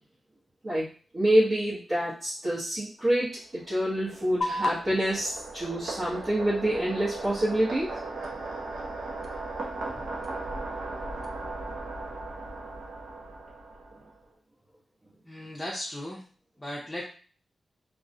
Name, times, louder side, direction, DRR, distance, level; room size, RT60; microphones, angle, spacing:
voice 1, 1.1-7.9, right 1 dB, 40° right, -9 dB, 0.8 m, -27 dB
sound 1, 3.5-14.2, right 2 dB, 75° right, 0.5 m, -38 dB
sound 2, 4.4-11.4, left 2 dB, 60° left, 0.4 m, -39 dB
voice 2, 15.2-16.2 16.6-17.0, left 1 dB, 15° left, -5 dB, 0.6 m, -36 dB
2.3 x 2.1 x 2.6 m, 0.41 s
cardioid pair, 70°, 0 cm